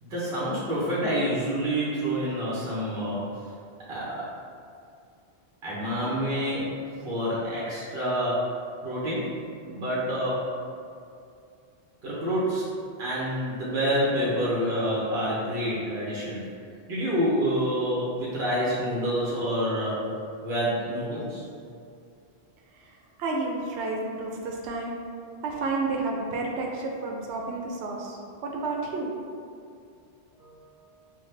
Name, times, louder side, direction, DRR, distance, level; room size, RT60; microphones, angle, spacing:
voice 1, 0.0-3.3 3.9-4.2 5.6-6.6 7.0-8.5 8.8-9.3 9.7-10.5 12.0-12.7 13.0-16.4 16.9-20.1 20.4-21.4 30.4-30.6, equal, 60° right, -8 dB, 1.1 m, -27 dB
voice 2, 23.2-25.0 25.4-28.2 28.4-29.1, right 3 dB, 90° right, 0 dB, 0.9 m, -30 dB
6.0 x 2.2 x 3.2 m, 2.4 s
omnidirectional pair, 1.1 m